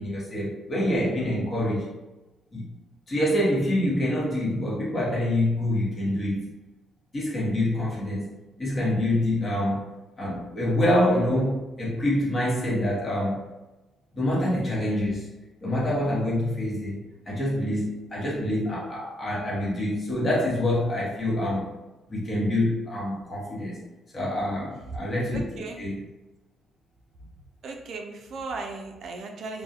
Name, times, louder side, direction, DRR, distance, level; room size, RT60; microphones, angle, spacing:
voice 1, 0.0-1.9 2.5-2.7 3.1-6.5 7.1-8.3 8.6-9.9 10.2-13.4 14.1-15.3 15.6-17.0 17.3-21.7 22.1-23.8 24.1-25.4 25.8-26.0, left 1 dB, 35° left, -6 dB, 1.0 m, -26 dB
voice 2, 25.3-25.9 27.6-29.6, right 3 dB, 65° right, 2 dB, 0.3 m, -36 dB
2.3 x 2.1 x 2.6 m, 1.1 s
cardioid pair, 90°, 0 cm